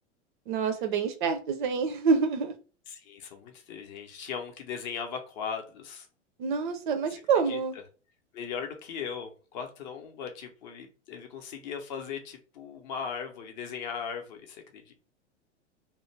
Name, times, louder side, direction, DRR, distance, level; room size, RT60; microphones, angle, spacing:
voice 1, 0.5-2.5 6.4-7.7, right 5 dB, 45° right, 0.5 m, -27 dB
voice 2, 2.9-6.1 7.5-7.6 8.3-14.9, left 6 dB, 40° left, 0.6 m, -38 dB
2.4 x 2.1 x 3.0 m
figure-of-eight pair, 95°, 36 cm